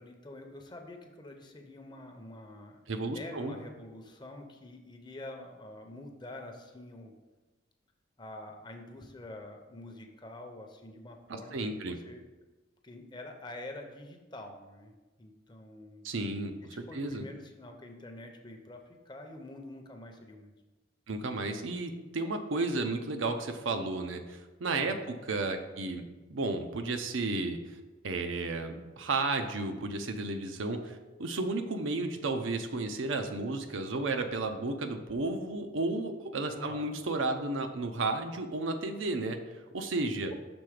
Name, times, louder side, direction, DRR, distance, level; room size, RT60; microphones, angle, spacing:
voice 1, 0.0-2.8 3.1-7.1 8.2-12.2 12.8-14.9 15.2-16.0 16.7-20.5 24.8-25.1 36.5-36.9 40.2-40.3, left 1 dB, 25° left, 4 dB, 0.6 m, -47 dB
voice 2, 2.9-3.6 11.3-12.0 16.0-17.3 21.1-27.8 28.0-39.4 39.7-40.3, right 2 dB, 90° right, 6 dB, 0.6 m, -33 dB
6.1 x 3.8 x 4.9 m, 1.2 s
head